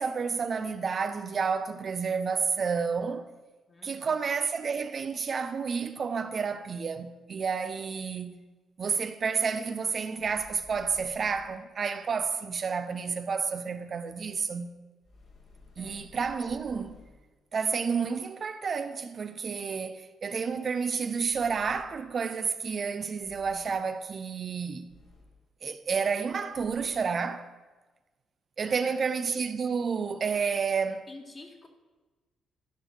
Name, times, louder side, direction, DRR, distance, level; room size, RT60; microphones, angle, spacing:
voice 1, 0.0-3.3 3.8-8.4 8.8-14.8 15.8-17.0 17.5-24.9 25.6-27.5 28.6-31.1, right 5 dB, 45° right, 0.6 m, -30 dB
voice 2, 3.7-4.2 15.8-16.0 28.6-29.0 31.1-31.7, left 2 dB, 30° left, 1.9 m, -49 dB
sound 1, 10.2-11.7 15.0-17.3 21.3-22.2 23.2-23.9 24.9-25.5 26.5-27.0, left 3 dB, 55° left, 2.2 m, -55 dB
13.0 x 4.8 x 8.1 m
cardioid pair, 90°, 0 cm